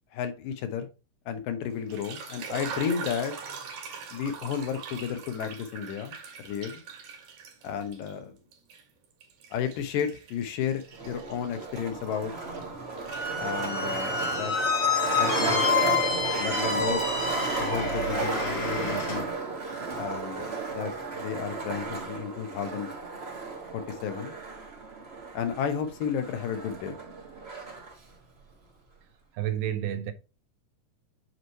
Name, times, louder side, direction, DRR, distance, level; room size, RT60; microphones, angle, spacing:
voice 1, 0.1-0.9 1.3-3.4 4.1-6.2 6.4-6.8 7.6-8.4 9.5-12.3 13.4-14.5 15.1-15.7 16.4-17.0 17.6-19.3 20.0-22.9 23.7-24.3 25.3-27.0, left 7 dB, 85° left, 2.6 m, -32 dB
sound 1, 1.7-8.1 8.5-12.7 13.0-13.8, right 6 dB, 65° right, 2.9 m, -42 dB
Skateboard, 10.9-27.9, right 4 dB, 50° right, 0.7 m, -33 dB
Squeak, 13.1-19.2, left 5 dB, 45° left, 1.6 m, -29 dB
voice 2, 29.3-30.1, right 11 dB, 85° right, 2.3 m, -30 dB
7.9 x 3.1 x 4.3 m
omnidirectional pair, 3.8 m